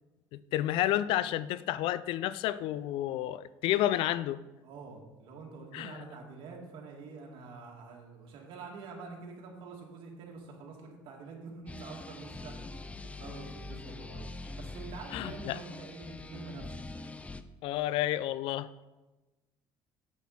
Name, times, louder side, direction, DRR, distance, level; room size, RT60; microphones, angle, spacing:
voice 1, 0.3-4.4 5.7-6.0 15.1-15.6 17.6-18.7, left 13 dB, 75° left, 17 dB, 0.4 m, -30 dB
voice 2, 4.6-14.3 14.6-16.7, right 4 dB, 65° right, 0 dB, 2.4 m, -46 dB
sound 1, 11.7-17.4, left 2 dB, 15° left, 0.5 m, -43 dB
8.3 x 8.1 x 4.3 m, 1.1 s
supercardioid pair, 95°, 9 cm